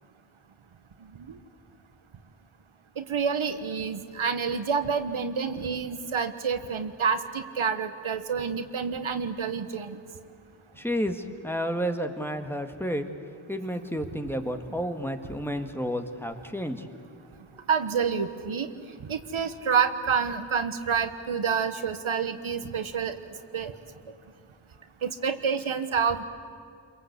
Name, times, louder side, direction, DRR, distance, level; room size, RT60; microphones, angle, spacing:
voice 1, 3.0-10.0 17.7-18.7 19.1-23.1 23.5-23.7 25.0-26.2, right 6 dB, 80° right, 9 dB, 1.4 m, -28 dB
voice 2, 10.8-13.0 13.5-16.8, equal, 5° left, 6 dB, 1.9 m, -31 dB
29.0 x 22.5 x 8.2 m, 2.3 s
wide cardioid pair, 80°, 48 cm